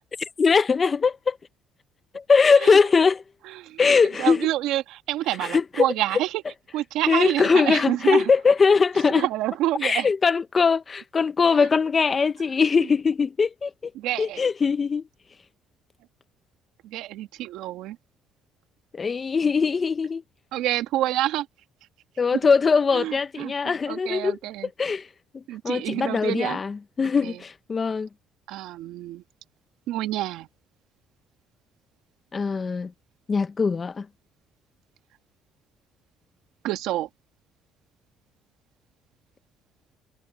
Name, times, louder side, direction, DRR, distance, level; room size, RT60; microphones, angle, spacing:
voice 1, 0.4-1.4 2.1-3.2 3.8-4.5 5.4-6.2 7.1-9.3 9.8-13.9 14.2-15.0 18.9-20.2 22.2-24.4 24.6-25.1 25.3-28.1 32.3-32.9 33.3-34.1, left 5 dB, 30° left, 0.9 m, -21 dB
voice 2, 3.5-3.8 4.2-6.4 6.7-8.3 9.2-10.1 11.6-11.7 14.0-14.4 16.8-18.0 20.5-21.5 22.3-22.4 22.9-24.7 25.5-26.6 27.2-27.4 28.5-29.2 29.9-30.5 36.6-37.1, right 14 dB, 80° right, 2.0 m, -28 dB
cardioid pair, 100°, 0 cm